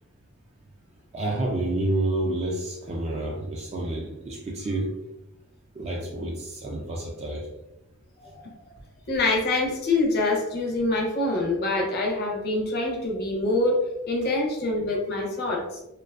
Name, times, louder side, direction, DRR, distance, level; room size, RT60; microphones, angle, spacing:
voice 1, 1.1-4.9 5.7-7.5 8.2-8.4, right 1 dB, 30° right, -1 dB, 0.3 m, -29 dB
voice 2, 9.1-13.8 14.1-15.8, left 2 dB, 50° left, -1 dB, 0.6 m, -25 dB
2.5 x 2.3 x 2.3 m, 0.92 s
head